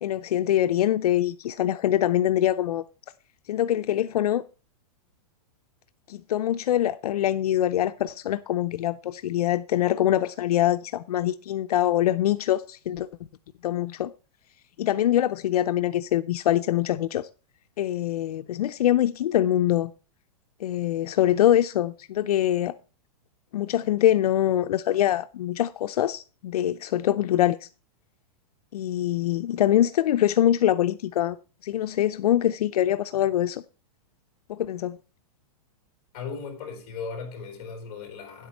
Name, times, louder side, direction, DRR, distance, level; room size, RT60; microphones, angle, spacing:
voice 1, 0.0-2.8 3.5-4.4 6.1-13.1 13.6-14.1 14.8-17.3 17.8-19.9 20.6-22.7 23.5-27.7 28.7-31.4 31.6-33.6 34.5-35.0, left 12 dB, 80° left, 0.5 m, -24 dB
voice 2, 36.1-38.5, left 5 dB, 25° left, 3.6 m, -37 dB
10.5 x 8.3 x 4.4 m
supercardioid pair, 175°, 19 cm